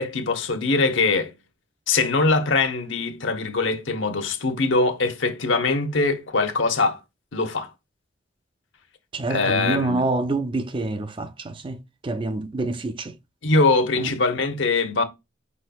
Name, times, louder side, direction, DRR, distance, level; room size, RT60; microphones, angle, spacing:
voice 1, 0.0-1.3 1.9-7.0 7.3-7.7 9.3-10.0 13.4-15.0, left 3 dB, 75° left, 0.9 m, -22 dB
voice 2, 9.1-13.1 14.0-14.1, right 2 dB, 25° right, 0.4 m, -27 dB
5.2 x 4.1 x 2.3 m
head